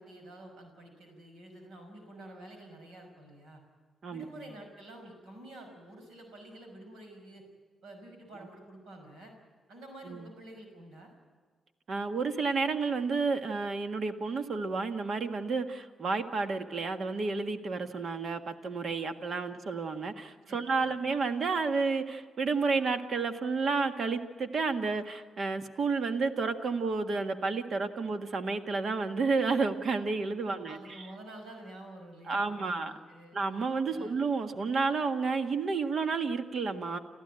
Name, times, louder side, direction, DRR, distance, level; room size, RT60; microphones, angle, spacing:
voice 1, 0.0-3.6 4.1-7.4 7.8-9.3 9.7-11.1 19.4-19.5 20.5-21.0 30.4-33.4 33.9-34.2, right 1 dB, 75° right, 4 dB, 5.7 m, -49 dB
voice 2, 11.9-31.1 32.3-32.9 33.3-37.0, right 4 dB, 60° right, 7 dB, 1.6 m, -31 dB
29.5 x 13.5 x 8.9 m, 1.4 s
hypercardioid pair, 45°, 0 cm